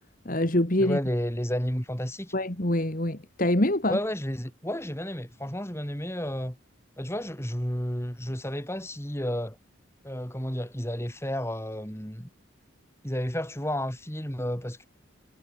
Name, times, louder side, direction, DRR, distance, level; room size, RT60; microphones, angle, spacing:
voice 1, 0.3-1.0 2.3-4.0, left 1 dB, 45° left, 2.4 m, -25 dB
voice 2, 0.8-2.3 3.9-6.6 7.0-9.6 10.0-12.3 13.0-14.9, equal, 15° left, 4.6 m, -31 dB
head